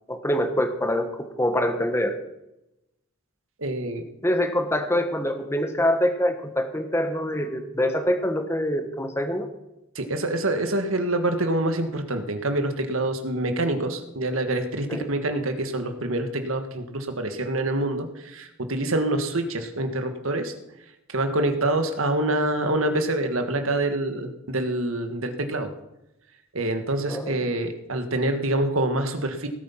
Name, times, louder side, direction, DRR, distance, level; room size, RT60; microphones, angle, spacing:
voice 1, 0.1-2.2 4.2-9.5 14.9-15.0 27.1-27.5, left 1 dB, 10° left, 7 dB, 1.3 m, -25 dB
voice 2, 3.6-4.0 9.9-20.5 21.1-25.7 26.5-29.5, right 1 dB, 80° right, 7 dB, 1.7 m, -26 dB
18.0 x 8.4 x 5.7 m, 0.91 s
head